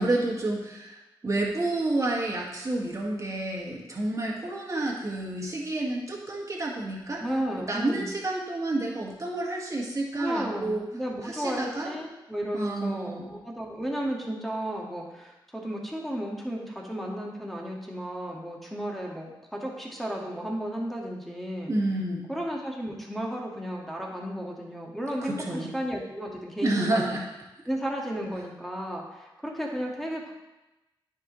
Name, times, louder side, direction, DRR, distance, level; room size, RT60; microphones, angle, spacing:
voice 1, 0.0-7.2 7.7-10.8 11.2-11.9 12.5-13.3 21.7-22.3 25.2-25.7 26.6-27.2, right 2 dB, 35° right, -2 dB, 1.8 m, -29 dB
voice 2, 7.2-8.1 10.2-21.7 22.3-27.2 27.7-30.3, equal, ahead, -1 dB, 1.8 m, -33 dB
9.4 x 5.3 x 3.1 m, 1.0 s
cardioid pair, 55°, 9 cm